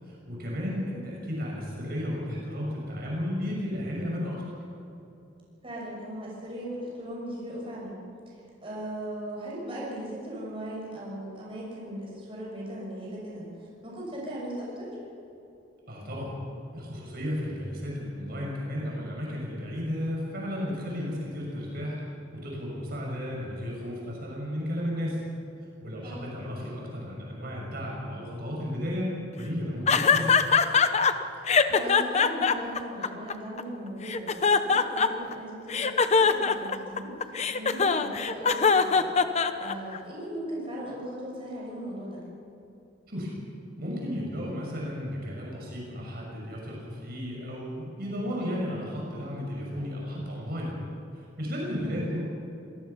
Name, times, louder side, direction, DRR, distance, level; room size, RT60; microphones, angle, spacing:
voice 1, 0.1-4.4 15.9-16.4 16.7-22.0 22.3-25.2 25.8-30.3 43.1-43.4 43.8-50.8 51.1-52.2, equal, 55° right, -3 dB, 6.4 m, -33 dB
voice 2, 0.6-1.0 5.6-8.0 8.6-13.5 13.8-14.9 26.0-26.2 31.7-37.1 37.5-39.1 39.6-42.2 51.6-52.0, right 1 dB, 30° right, -4 dB, 6.7 m, -38 dB
sound 1, 29.9-31.1 31.5-33.6 34.1-35.3 35.7-40.0, left 5 dB, 35° left, 0.9 m, -22 dB
26.0 x 19.0 x 5.8 m, 2.8 s
head